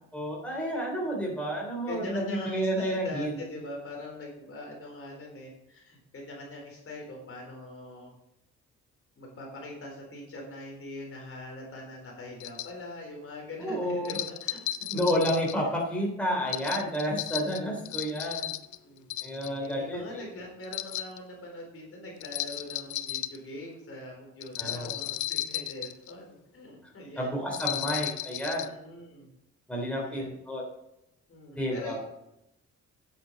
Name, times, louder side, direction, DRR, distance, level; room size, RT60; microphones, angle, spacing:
voice 1, 0.1-3.3 13.6-14.1 14.9-18.5 19.2-20.2 24.6-24.9 27.2-28.7 29.7-30.6 31.6-32.0, equal, 5° left, -2 dB, 3.4 m, -30 dB
voice 2, 1.9-8.1 9.2-14.9 15.6-15.7 16.2-16.4 18.3-18.5 18.8-19.1 19.6-27.4 28.6-29.3 29.9-30.4 31.3-32.0, left 1 dB, 45° left, 0 dB, 3.9 m, -42 dB
sound 1, 12.4-12.7 14.0-15.6 16.5-18.8 19.1-19.7 20.6-21.2 22.2-23.4 24.4-26.1 27.5-28.7, left 13 dB, 80° left, 0.6 m, -34 dB
9.3 x 7.4 x 5.2 m, 0.85 s
cardioid pair, 90°, 30 cm